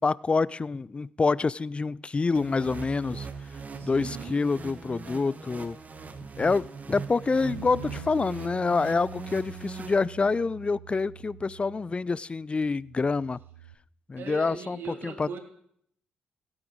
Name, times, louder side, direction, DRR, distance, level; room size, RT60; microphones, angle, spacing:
voice 1, 0.0-3.3 3.8-5.8 6.4-13.4 14.1-15.4, left 4 dB, 25° left, 0.4 m, -27 dB
sound 1, 2.3-10.5, right 5 dB, 35° right, 1.6 m, -41 dB
voice 2, 3.7-4.5 14.2-15.4, right 5 dB, 55° right, 2.8 m, -40 dB
Bass guitar, 7.5-12.3 12.6-13.7, right 8 dB, 85° right, 0.7 m, -45 dB
17.0 x 8.8 x 4.7 m
hypercardioid pair, 45°, 4 cm